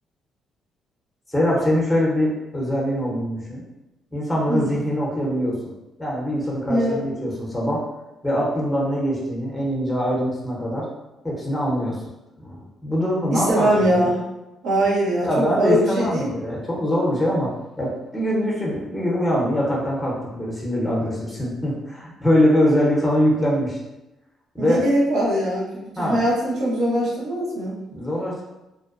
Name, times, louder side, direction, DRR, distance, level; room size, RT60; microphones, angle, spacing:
voice 1, 1.3-3.6 4.1-5.7 6.0-7.8 8.2-10.9 11.2-12.0 12.4-13.7 13.9-14.0 15.2-17.5 17.8-23.8 24.5-24.8 26.0-26.2 27.9-28.4, equal, 5° left, -4 dB, 0.8 m, -23 dB
voice 2, 6.7-7.0 13.3-14.2 14.6-16.3 24.6-27.7, right 1 dB, 75° right, -6 dB, 0.9 m, -22 dB
2.5 x 2.1 x 2.4 m, 0.97 s
cardioid pair, 90°, 0 cm